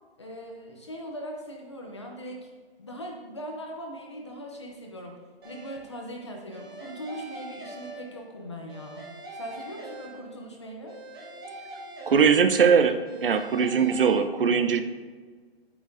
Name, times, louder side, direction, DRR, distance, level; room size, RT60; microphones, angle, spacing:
voice 1, 0.2-2.5 2.8-9.1 9.4-11.0, equal, 25° left, 1 dB, 0.7 m, -40 dB
sound 1, 5.4-6.0 6.5-8.4 8.7-10.5 10.9-12.7 13.0-14.1, right 1 dB, 20° right, 1.4 m, -43 dB
voice 2, 12.1-14.8, right 6 dB, 60° right, 9 dB, 0.7 m, -21 dB
8.9 x 8.4 x 2.6 m, 1.5 s
hypercardioid pair, 175°, 32 cm